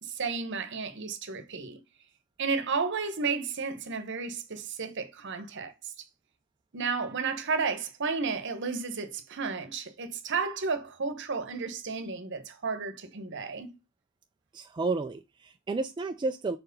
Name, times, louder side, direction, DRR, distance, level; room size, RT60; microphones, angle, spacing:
voice 1, 0.0-1.8 2.4-5.7 6.7-13.7, right 5 dB, 60° right, 1.0 m, -32 dB
voice 2, 14.5-16.6, right 3 dB, 20° right, 0.3 m, -31 dB
4.6 x 4.2 x 5.2 m
head